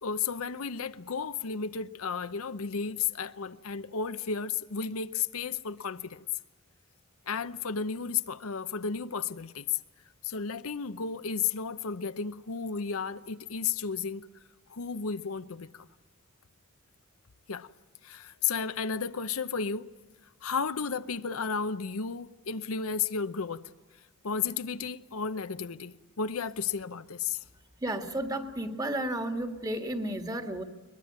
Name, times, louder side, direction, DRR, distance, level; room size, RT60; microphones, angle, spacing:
voice 1, 0.0-6.2 7.3-9.8 10.2-14.3 14.7-15.9 17.5-17.7 18.0-19.9 20.4-23.7 24.2-27.4, left 6 dB, 70° left, 0.8 m, -33 dB
voice 2, 27.8-30.6, right 1 dB, 15° right, 1.9 m, -32 dB
22.5 x 21.0 x 9.5 m
head